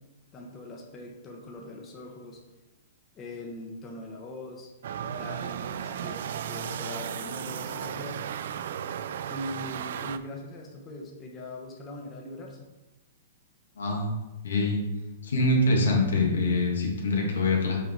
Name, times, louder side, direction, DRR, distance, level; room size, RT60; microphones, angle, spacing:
voice 1, 0.3-2.4 3.1-4.7 5.1-8.2 9.3-12.7, left 1 dB, 25° left, 0 dB, 1.1 m, -41 dB
sound 1, 4.8-10.2, right 8 dB, 65° right, 0.4 m, -35 dB
voice 2, 13.7-14.2 14.4-14.8 15.2-17.8, left 2 dB, 80° left, -1 dB, 1.8 m, -24 dB
5.7 x 5.2 x 3.7 m, 1.1 s
hypercardioid pair, 115°, 0 cm